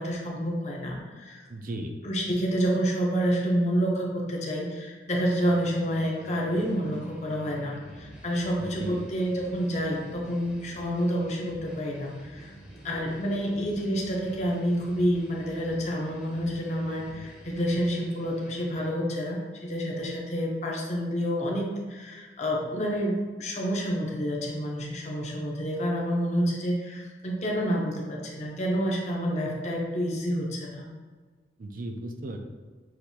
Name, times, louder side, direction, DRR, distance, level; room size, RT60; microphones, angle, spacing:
voice 1, 0.0-1.4 2.0-12.5 12.8-30.9, equal, 40° left, -2 dB, 0.8 m, -28 dB
voice 2, 1.5-2.0 8.6-9.0 31.6-32.4, right 1 dB, 50° right, 5 dB, 0.4 m, -36 dB
sound 1, 5.2-18.9, equal, 5° right, 0.7 m, -47 dB
6.3 x 2.6 x 2.8 m, 1.5 s
head